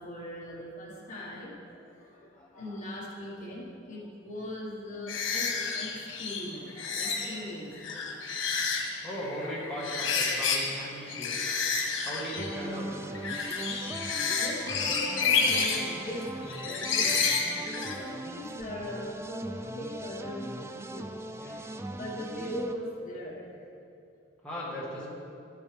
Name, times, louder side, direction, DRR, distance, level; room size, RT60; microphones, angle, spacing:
voice 1, 0.0-1.5 1.8-5.9 6.2-6.7 7.0-7.7 11.9-12.1 13.9-16.3 16.6-17.2 17.7-21.3 21.9-23.4, left 1 dB, 40° left, -5 dB, 1.7 m, -40 dB
voice 2, 2.3-2.8 6.7-7.4 8.0-8.1 9.0-11.5 12.0-13.1 21.4-21.8 24.4-25.1, equal, 5° left, -8 dB, 1.6 m, -39 dB
sound 1, 5.1-7.4 7.7-10.8 11.1-18.1, left 5 dB, 85° left, 1.4 m, -30 dB
sound 2, 12.4-22.7, right 2 dB, 15° right, 0.3 m, -40 dB
12.0 x 8.3 x 3.5 m, 2.6 s
head